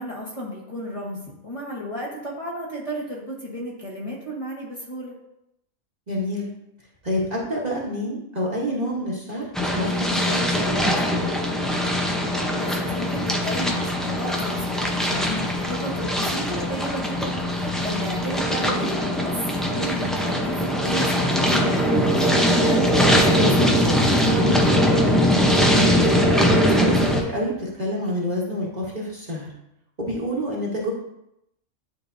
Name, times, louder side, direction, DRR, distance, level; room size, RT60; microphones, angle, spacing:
voice 1, 0.0-5.1 12.2-24.7, equal, 25° left, -5 dB, 1.3 m, -33 dB
voice 2, 6.1-6.5 7.0-11.3 18.6-18.9 25.6-26.1 26.6-29.5 30.0-30.9, equal, 35° right, -5 dB, 1.3 m, -28 dB
sound 1, 9.5-27.2, equal, ahead, 0.4 m, -21 dB
10.5 x 3.5 x 2.6 m, 0.83 s
omnidirectional pair, 1.3 m